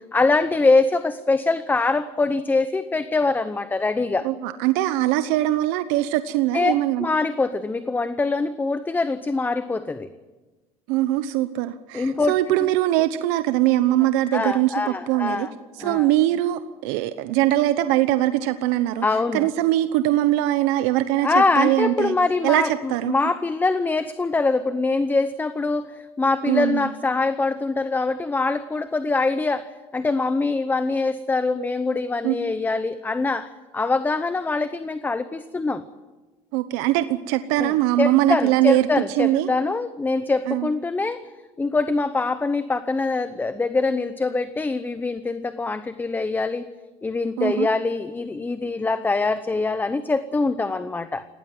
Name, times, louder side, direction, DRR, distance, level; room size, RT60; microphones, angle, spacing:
voice 1, 0.1-4.3 6.5-10.1 11.9-12.7 14.3-15.5 15.8-16.1 19.0-19.5 21.2-35.8 37.6-41.2 41.6-46.7 47.0-51.3, left 3 dB, 15° left, 12 dB, 0.8 m, -23 dB
voice 2, 4.2-7.1 10.9-15.5 15.8-19.0 19.3-22.1 22.4-23.1 26.4-26.9 32.2-32.3 36.5-38.9 39.2-39.5 40.5-40.7 47.4-47.7, right 14 dB, 80° right, 11 dB, 1.0 m, -22 dB
19.0 x 18.0 x 9.3 m, 1.2 s
cardioid pair, 125°, 14 cm